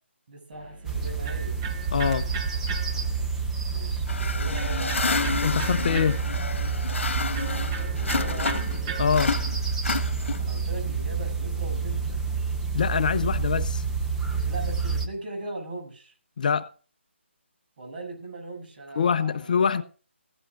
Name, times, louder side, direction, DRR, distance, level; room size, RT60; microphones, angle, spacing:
voice 1, 0.3-1.6 3.7-5.2 7.5-8.7 10.4-12.2 14.5-16.1 17.8-19.8, right 2 dB, 45° right, 7.1 m, -39 dB
Electric guitar, 0.5-9.6, right 5 dB, 20° right, 1.3 m, -40 dB
sound 1, 0.9-15.1, right 5 dB, 5° right, 0.8 m, -29 dB
voice 2, 1.9-2.3 5.4-6.2 9.0-9.3 12.7-13.8 16.4-16.7 19.0-19.8, left 6 dB, 40° left, 0.6 m, -24 dB
sound 2, 4.1-8.8 9.1-10.6, left 4 dB, 70° left, 1.3 m, -30 dB
16.5 x 14.5 x 2.5 m
figure-of-eight pair, 165°, 7 cm